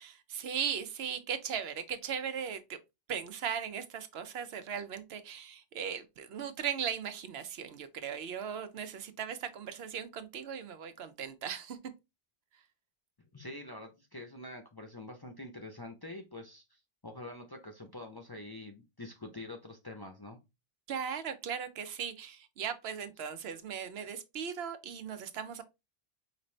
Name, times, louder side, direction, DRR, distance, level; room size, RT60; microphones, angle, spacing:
voice 1, 0.0-2.8 3.1-11.8 12.5-12.6 20.9-25.6, right 7 dB, 75° right, 0.9 m, -38 dB
voice 2, 13.3-20.4, left 2 dB, 30° left, 0.5 m, -46 dB
5.1 x 2.6 x 3.1 m
omnidirectional pair, 1.1 m